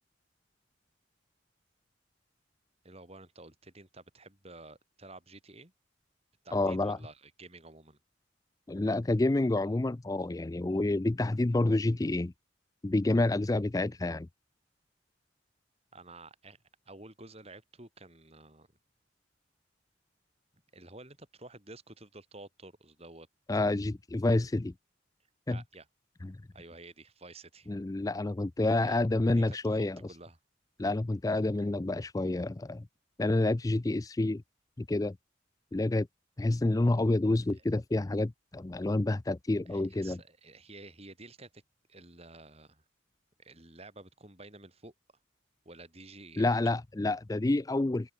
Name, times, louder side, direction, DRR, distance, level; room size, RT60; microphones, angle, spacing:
voice 1, 2.8-5.7 6.4-8.0 15.9-18.7 20.7-23.3 25.5-25.9 26.5-27.7 28.8-29.0 29.5-30.4 39.7-41.6 41.9-42.8 43.4-44.9 45.7-46.8, right 2 dB, 30° right, 7.0 m, -51 dB
voice 2, 6.5-7.0 8.7-12.3 12.8-14.3 23.5-24.7 25.5-25.6 26.2-26.4 27.7-30.0 30.8-32.9 33.2-34.4 34.8-35.2 35.7-36.1 36.4-40.2 46.4-48.1, left 2 dB, 20° left, 0.4 m, -28 dB
open air
head